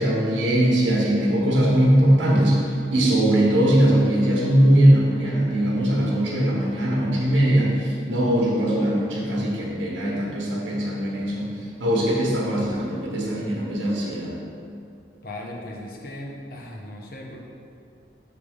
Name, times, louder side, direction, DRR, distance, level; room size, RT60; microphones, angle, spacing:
voice 1, 0.0-14.4, right 1 dB, 90° right, -4 dB, 1.2 m, -20 dB
voice 2, 15.2-17.4, left 1 dB, 50° left, -1 dB, 0.8 m, -37 dB
6.9 x 3.4 x 5.0 m, 2.4 s
head